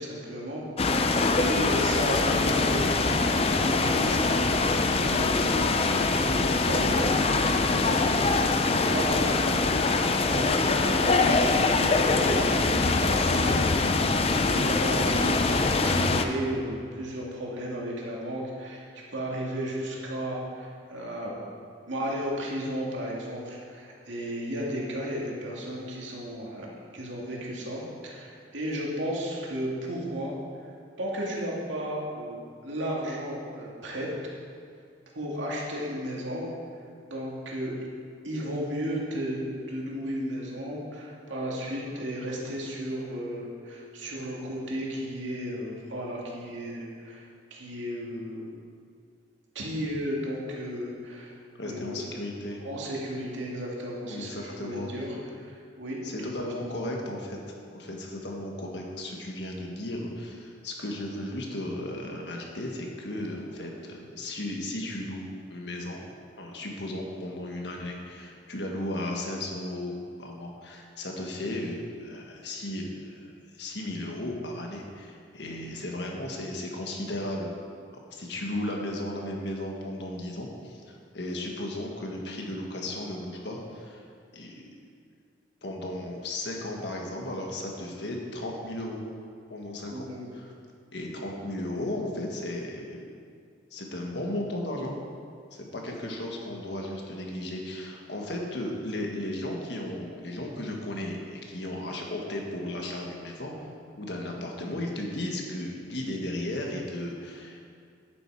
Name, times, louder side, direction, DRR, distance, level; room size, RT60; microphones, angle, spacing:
voice 1, 0.0-4.7 5.0-8.6 8.9-9.8 10.2-18.8 19.1-21.3 21.9-30.3 31.0-34.1 35.1-36.5 37.1-37.7 38.2-47.2 47.5-48.5 49.5-51.4 51.6-52.0 52.6-56.3 89.9-90.3, equal, 80° right, -3 dB, 2.3 m, -34 dB
sound 1, 0.8-16.3, left 3 dB, 30° left, 0.5 m, -23 dB
voice 2, 51.6-52.6 54.1-54.9 56.0-57.4 57.7-65.2 65.5-66.1 66.4-77.5 78.1-84.0 84.3-84.5 85.6-89.0 89.5-90.5 90.9-93.0 93.7-95.0 95.5-103.5 104.0-107.6, left 1 dB, 65° left, 0 dB, 1.6 m, -35 dB
10.5 x 9.2 x 4.8 m, 2.2 s
head